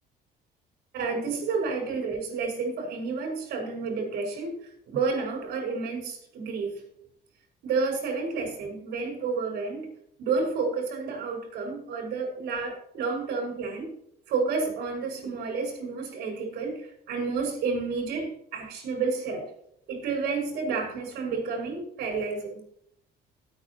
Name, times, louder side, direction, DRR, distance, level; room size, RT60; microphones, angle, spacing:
voice 1, 0.9-4.6 4.9-6.8 7.6-9.9 10.2-13.9 14.3-19.5 19.9-22.6, right 4 dB, 75° right, 1 dB, 4.8 m, -30 dB
17.5 x 8.6 x 3.0 m, 0.70 s
cardioid pair, 110°, 17 cm